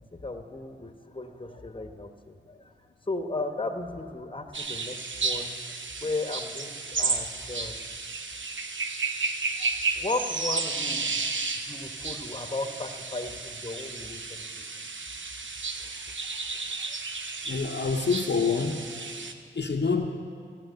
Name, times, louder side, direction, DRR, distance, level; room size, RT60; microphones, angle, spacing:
voice 1, 0.2-2.7 3.1-5.0 5.2-5.6 6.0-7.9 9.6-9.7 10.0-11.2 11.6-14.4 15.8-15.9 16.3-17.0, left 2 dB, 25° left, 5 dB, 1.0 m, -35 dB
sound 1, 4.5-19.3, right 4 dB, 70° right, 0.8 m, -33 dB
voice 2, 17.5-18.8 19.5-20.1, left 5 dB, 60° left, 3 dB, 0.7 m, -26 dB
15.5 x 6.0 x 9.1 m, 2.3 s
wide cardioid pair, 55°, 20 cm